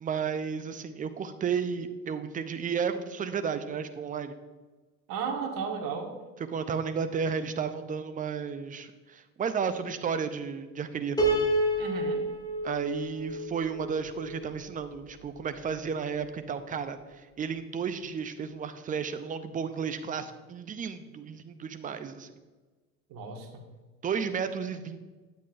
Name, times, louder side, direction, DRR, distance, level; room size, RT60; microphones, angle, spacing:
voice 1, 0.0-4.3 6.5-11.2 12.6-22.3 24.0-25.0, right 6 dB, 20° right, 9 dB, 0.5 m, -33 dB
voice 2, 5.1-6.1 11.8-12.2 23.1-23.6, right 5 dB, 45° right, 2 dB, 1.7 m, -34 dB
Piano, 11.2-14.4, right 1 dB, 10° left, 2.2 m, -29 dB
9.5 x 8.3 x 2.6 m, 1.3 s
hypercardioid pair, 80°, 47 cm